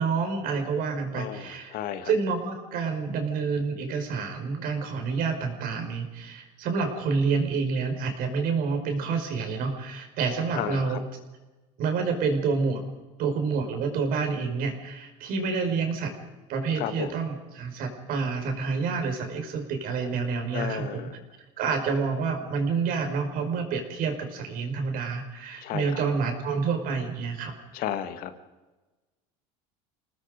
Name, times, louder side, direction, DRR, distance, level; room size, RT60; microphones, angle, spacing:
voice 1, 0.0-1.8 2.0-11.0 11.8-12.8 13.2-16.1 16.5-21.1 21.6-27.5, right 5 dB, 60° right, 5 dB, 5.4 m, -28 dB
voice 2, 1.1-2.1 10.5-11.0 16.8-17.2 20.5-21.1 25.6-26.0 27.7-28.3, left 10 dB, 60° left, 9 dB, 2.0 m, -33 dB
28.5 x 19.0 x 5.2 m, 1.2 s
supercardioid pair, 110°, 17 cm